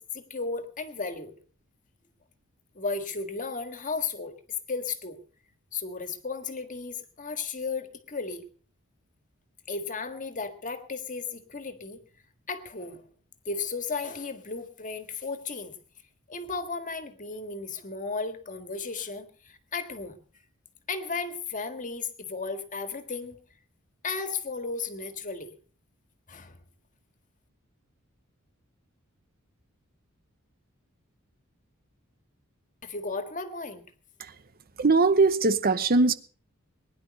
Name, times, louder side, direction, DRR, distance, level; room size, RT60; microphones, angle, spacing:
voice 1, 0.0-1.3 2.7-4.4 4.7-5.2 5.7-8.5 9.7-12.0 12.5-13.1 13.4-15.7 16.3-20.2 20.9-23.4 24.0-25.5 26.3-26.6 32.8-33.9, left 4 dB, 35° left, 1.7 m, -34 dB
voice 2, 34.8-36.1, right 3 dB, 45° right, 0.8 m, -21 dB
20.5 x 10.5 x 5.3 m
head